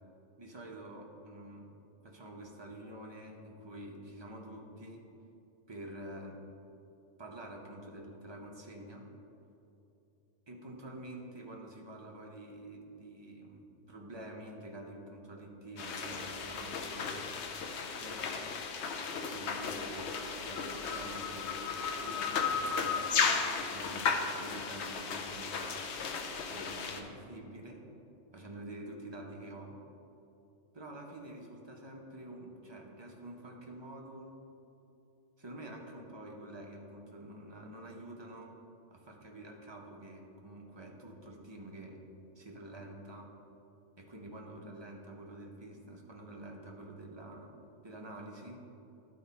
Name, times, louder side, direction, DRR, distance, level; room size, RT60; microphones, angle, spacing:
voice 1, 0.4-1.7 2.0-5.0 5.7-6.4 7.2-9.1 10.5-17.3 18.0-18.3 19.1-25.8 26.5-27.8 28.3-29.8 30.7-34.4 35.4-38.5 38.9-42.0 42.4-43.3 44.0-47.5 47.8-48.6, right 1 dB, 25° right, -1 dB, 0.8 m, -47 dB
sound 1, 15.8-27.0, left 5 dB, 65° left, 0.9 m, -35 dB
11.5 x 4.1 x 4.1 m, 2.9 s
omnidirectional pair, 1.3 m